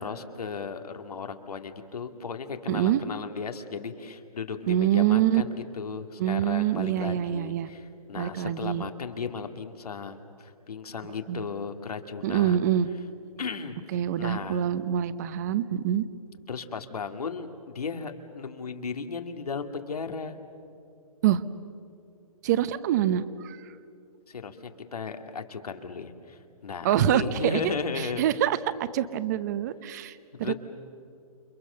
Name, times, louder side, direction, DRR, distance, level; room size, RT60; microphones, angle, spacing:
voice 1, 0.0-12.6 13.4-14.6 16.5-20.4 24.3-28.3 30.4-30.5, left 5 dB, 90° left, 6 dB, 2.3 m, -36 dB
voice 2, 2.7-3.0 4.7-5.4 6.2-7.7 8.2-8.8 11.3-11.4 12.2-12.9 13.9-16.0 21.2-21.4 22.4-23.7 26.8-28.6 28.9-30.5, right 11 dB, 30° right, 15 dB, 0.8 m, -25 dB
29.0 x 26.5 x 6.8 m, 2.5 s
hypercardioid pair, 160°, 19 cm